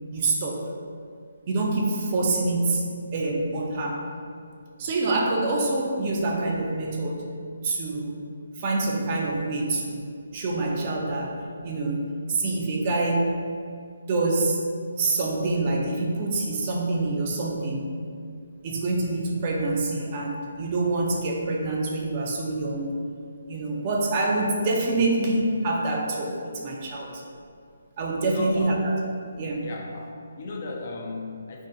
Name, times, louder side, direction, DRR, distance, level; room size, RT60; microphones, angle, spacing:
voice 1, 0.1-0.6 1.5-4.0 4.8-7.2 7.6-8.2 8.6-13.4 14.1-14.6 15.0-18.0 18.6-23.1 23.5-27.2 28.0-28.9 29.4-29.6, right 2 dB, 35° right, -1 dB, 0.4 m, -26 dB
voice 2, 28.2-28.8 29.6-31.7, left 3 dB, 45° left, 0 dB, 0.3 m, -36 dB
2.6 x 2.1 x 3.6 m, 2.2 s
hypercardioid pair, 155°, 0 cm